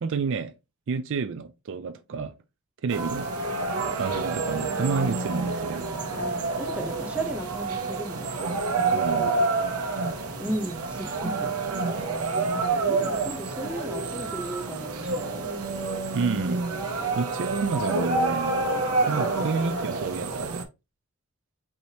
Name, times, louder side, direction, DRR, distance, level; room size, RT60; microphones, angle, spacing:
voice 1, 0.0-0.5 0.9-2.3 2.8-3.3 4.0-5.9 8.9-9.4 16.1-16.6 17.1-18.6 19.1-20.6, right 5 dB, 60° right, 0.4 m, -29 dB
sound 1, 2.9-20.6, right 3 dB, 90° right, 0.9 m, -28 dB
voice 2, 6.2-8.5 10.4-11.5 12.5-15.4, right 1 dB, 5° right, 0.8 m, -35 dB
4.8 x 2.7 x 2.8 m
head